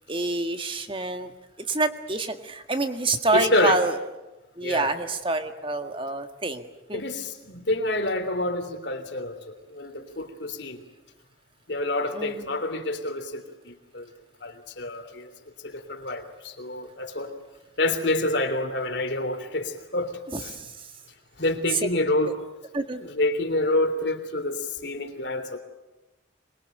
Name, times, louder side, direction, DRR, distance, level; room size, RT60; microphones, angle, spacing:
voice 1, 0.1-1.3 1.6-4.0 4.6-7.0 12.1-12.6 20.3-20.9 21.7-21.8 22.2-22.3 22.7-23.0, right 2 dB, 25° right, 7 dB, 1.7 m, -27 dB
voice 2, 3.3-3.8 4.6-4.9 6.9-10.8 11.7-14.1 14.4-15.3 15.6-17.3 17.8-20.5 21.4-22.3 23.0-25.6, left 2 dB, 60° left, 7 dB, 3.3 m, -28 dB
26.0 x 22.5 x 9.2 m, 1.1 s
head